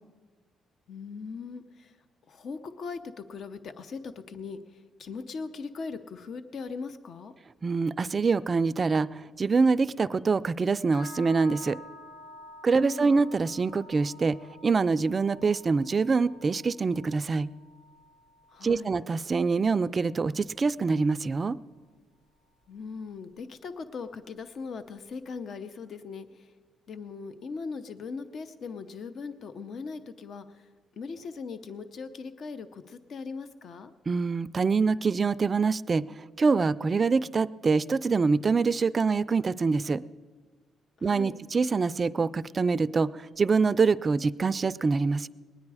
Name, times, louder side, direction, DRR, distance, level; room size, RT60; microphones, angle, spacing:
voice 1, 0.9-2.0 2.3-7.3 12.8-13.2 18.5-18.9 22.7-26.5 26.9-30.7 31.0-33.9 41.0-41.4, left 4 dB, 60° left, 11 dB, 0.7 m, -39 dB
voice 2, 7.6-11.8 12.6-17.5 18.6-21.6 34.1-36.1 36.4-40.0 41.0-45.3, right 4 dB, 35° right, 17 dB, 0.3 m, -25 dB
sound 1, 10.9-21.0, left 2 dB, 80° left, 2.2 m, -51 dB
20.5 x 9.6 x 4.8 m, 1.4 s
cardioid pair, 90°, 0 cm